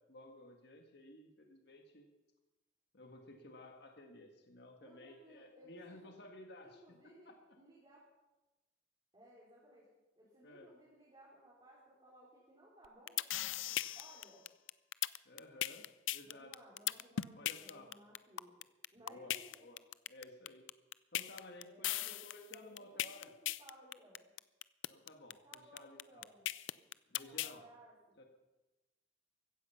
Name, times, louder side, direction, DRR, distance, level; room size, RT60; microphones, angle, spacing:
voice 1, 0.1-2.1 2.9-7.3 10.4-10.7 15.2-15.8 16.1-16.5 16.9-17.0 17.4-17.9 19.0-19.3 19.6-19.8 20.1-20.6 21.1-23.3 24.9-26.3 27.1-27.6 28.2-28.3, left 1 dB, 55° left, 3 dB, 1.8 m, -55 dB
voice 2, 4.8-6.1 6.6-7.3 7.5-8.1 9.1-9.9 10.2-14.5 16.2-18.6 18.9-19.7 21.6-24.3 25.4-26.5 27.2-28.2, equal, 25° right, -6 dB, 4.1 m, -60 dB
sound 1, 12.8-27.5, left 13 dB, 75° left, 0.5 m, -38 dB
16.0 x 14.5 x 5.8 m, 1.1 s
head